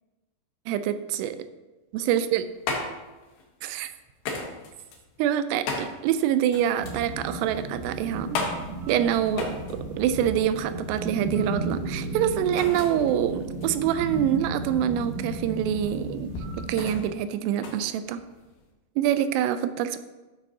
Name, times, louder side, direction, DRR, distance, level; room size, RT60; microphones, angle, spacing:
voice 1, 0.7-1.4 1.9-2.4 3.6-3.9 5.2-8.4 8.9-16.3 16.6-18.2 19.0-20.0, right 10 dB, 90° right, 11 dB, 2.7 m, -26 dB
sound 1, 2.1-18.7, left 4 dB, 80° left, 3.4 m, -37 dB
sound 2, 6.7-17.0, right 1 dB, 40° right, 2.0 m, -34 dB
12.5 x 7.1 x 2.8 m, 1.2 s
omnidirectional pair, 4.7 m